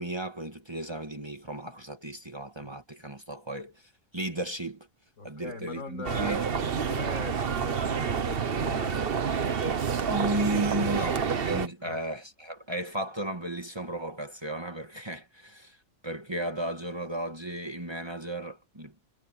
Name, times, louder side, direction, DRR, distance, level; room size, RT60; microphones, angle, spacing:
voice 1, 0.0-4.9 5.2-6.4 10.1-15.8 16.0-18.9, right 1 dB, 20° right, 1.7 m, -34 dB
voice 2, 5.2-9.1 9.4-9.6 10.1-10.4 11.8-12.0, left 2 dB, 85° left, 7.3 m, -41 dB
sound 1, 6.0-11.7, right 6 dB, 50° right, 1.2 m, -28 dB
omnidirectional pair, 1.3 m